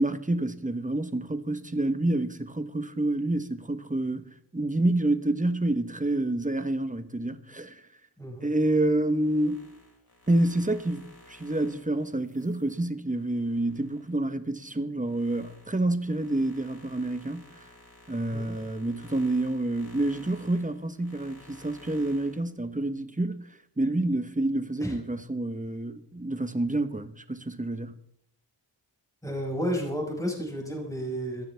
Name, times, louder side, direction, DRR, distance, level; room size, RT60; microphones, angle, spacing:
voice 1, 0.0-7.8 8.4-9.6 10.3-17.5 18.1-23.5 23.8-27.9, right 1 dB, 15° right, 1.2 m, -28 dB
voice 2, 8.2-8.5 18.3-18.6 24.8-25.0 29.2-31.4, equal, 5° left, 5.4 m, -32 dB
sound 1, 9.0-14.1 14.6-22.4, left 2 dB, 55° left, 6.0 m, -54 dB
21.0 x 15.0 x 3.5 m
wide cardioid pair, 70°, 45 cm